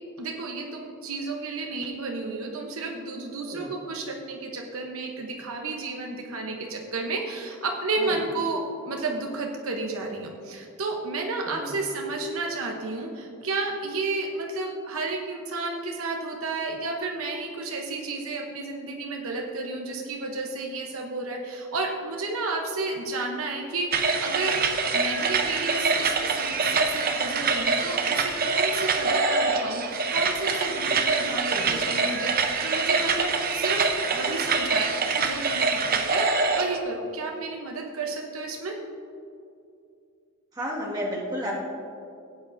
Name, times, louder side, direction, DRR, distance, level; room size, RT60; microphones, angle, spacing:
voice 1, 0.2-24.6 24.9-33.9 34.1-38.7, right 3 dB, 70° right, 1 dB, 0.9 m, -32 dB
voice 2, 11.5-11.8 31.5-31.8 40.5-41.6, equal, 20° right, -5 dB, 1.9 m, -32 dB
sound 1, 23.9-36.8, right 4 dB, 45° right, 0.7 m, -25 dB
16.0 x 8.8 x 2.6 m, 2.5 s
head